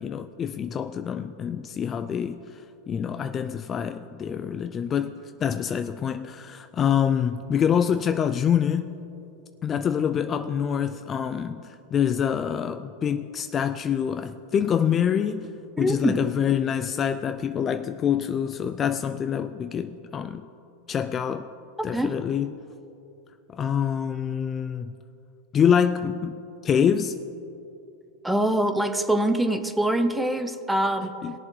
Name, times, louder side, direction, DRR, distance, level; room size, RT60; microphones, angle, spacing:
voice 1, 0.0-9.0 9.6-20.5 20.9-21.5 21.8-22.6 23.5-25.0 25.5-27.2 31.2-31.3, left 8 dB, 25° left, 0.3 m, -26 dB
voice 2, 15.8-16.2 21.9-22.1 28.2-31.1, right 1 dB, 5° right, 0.7 m, -24 dB
20.0 x 7.2 x 3.2 m
supercardioid pair, 130°, 0 cm